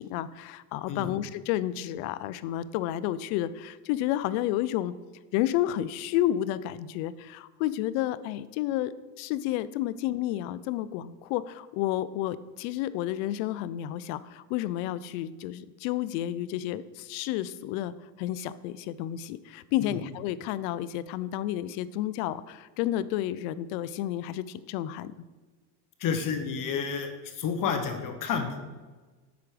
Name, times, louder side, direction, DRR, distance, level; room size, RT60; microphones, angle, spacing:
voice 1, 0.0-4.9 5.3-25.1, left 13 dB, 70° left, 16 dB, 0.6 m, -31 dB
voice 2, 26.0-28.6, left 6 dB, 45° left, 7 dB, 1.1 m, -30 dB
8.2 x 6.1 x 4.9 m, 1.3 s
supercardioid pair, 125°, 47 cm